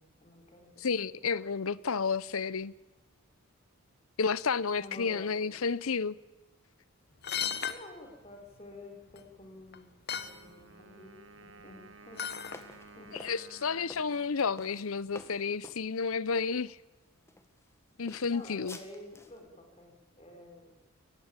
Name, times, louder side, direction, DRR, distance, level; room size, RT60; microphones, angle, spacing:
voice 1, 0.0-0.8 4.8-5.6 7.7-12.6 13.0-13.2 18.2-20.7, left 2 dB, 30° left, 4.9 m, -50 dB
voice 2, 0.8-2.7 4.2-6.2 13.1-16.8 18.0-18.8, left 5 dB, 75° left, 0.7 m, -31 dB
sound 1, 7.2-7.8 9.1-9.2 9.7-9.8 10.1-10.3 12.2-12.6 13.1-13.2, left 8 dB, 45° left, 1.3 m, -34 dB
Wind instrument woodwind instrument, 10.1-15.7, right 3 dB, 60° right, 1.9 m, -55 dB
sound 2, 12.5-15.8 16.6-16.7 17.3-17.7 18.1-19.4, left 2 dB, 10° left, 1.6 m, -50 dB
23.0 x 19.0 x 9.0 m
head